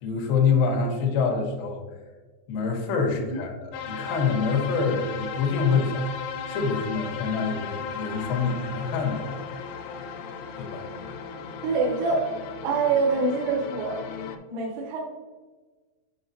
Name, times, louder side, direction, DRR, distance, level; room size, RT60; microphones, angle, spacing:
voice 1, 0.0-1.8 2.5-6.1 6.5-9.4 10.6-10.9, left 5 dB, 75° left, 1 dB, 2.7 m, -26 dB
sound 1, 3.7-14.4, left 6 dB, 90° left, 3.5 m, -36 dB
voice 2, 11.6-12.3 12.6-14.0 14.5-15.0, right 4 dB, 85° right, -1 dB, 3.7 m, -25 dB
9.1 x 4.8 x 2.7 m, 1.3 s
omnidirectional pair, 6.0 m